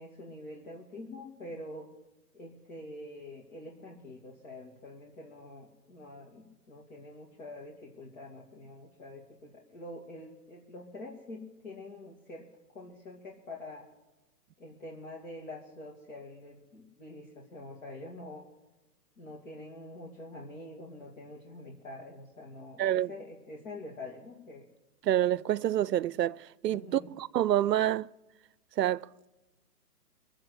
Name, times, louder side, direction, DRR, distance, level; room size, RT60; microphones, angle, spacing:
voice 1, 0.0-1.9 2.3-12.5 12.7-13.9 14.6-18.5 19.2-24.7 26.7-27.1, left 1 dB, 50° left, 2.6 m, -46 dB
voice 2, 22.8-23.1 25.0-28.1 28.8-29.1, right 12 dB, 85° right, 0.6 m, -27 dB
21.0 x 7.8 x 8.2 m
hypercardioid pair, 150°, 48 cm